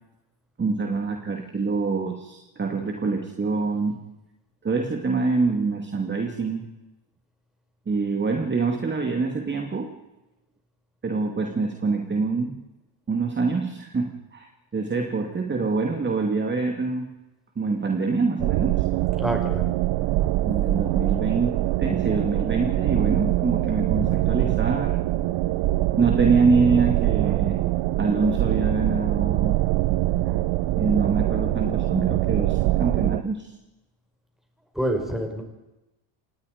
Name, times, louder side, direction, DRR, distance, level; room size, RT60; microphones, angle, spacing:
voice 1, 0.6-4.0 4.6-6.7 7.9-9.9 11.0-12.6 13.1-17.1 17.6-18.8 20.5-25.0 26.0-27.6 28.0-29.6 30.8-33.5, right 4 dB, 25° right, 3 dB, 2.5 m, -25 dB
sound 1, 18.4-33.2, right 16 dB, 65° right, 0.9 m, -23 dB
voice 2, 19.2-19.7 34.8-35.4, right 1 dB, ahead, 3 dB, 5.4 m, -26 dB
26.5 x 19.5 x 5.2 m, 0.98 s
cardioid pair, 110°, 47 cm